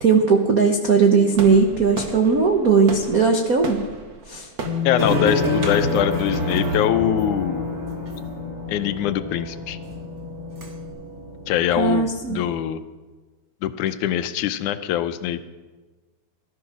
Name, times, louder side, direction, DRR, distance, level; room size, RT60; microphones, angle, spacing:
voice 1, 0.0-3.8 4.3-4.5 11.8-12.4, right 5 dB, 70° right, 3 dB, 0.8 m, -18 dB
sound 1, 1.3-6.3, right 3 dB, 50° right, 1.2 m, -35 dB
Bass guitar, 4.6-10.9, left 10 dB, 25° left, 2.3 m, -32 dB
voice 2, 4.8-7.7 8.7-9.8 11.5-12.8 13.6-15.4, left 11 dB, 85° left, 11 dB, 2.2 m, -23 dB
sound 2, 5.0-12.5, equal, 30° right, 1.5 m, -28 dB
18.0 x 13.0 x 6.1 m, 1.3 s
omnidirectional pair, 3.5 m